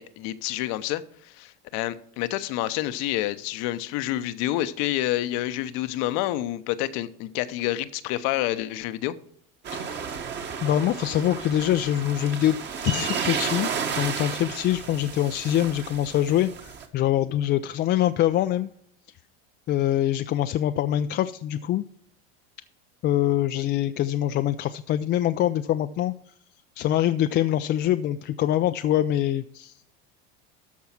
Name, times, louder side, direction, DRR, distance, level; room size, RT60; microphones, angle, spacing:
voice 1, 0.0-9.1, left 14 dB, 65° left, 0.9 m, -28 dB
sound 1, 9.6-16.9, right 6 dB, 35° right, 1.6 m, -32 dB
voice 2, 9.7-10.1 10.6-12.6 12.8-18.7 19.7-21.8 23.0-26.1 26.8-29.8, left 12 dB, 35° left, 0.4 m, -24 dB
13.5 x 4.7 x 5.9 m
supercardioid pair, 115°, 30 cm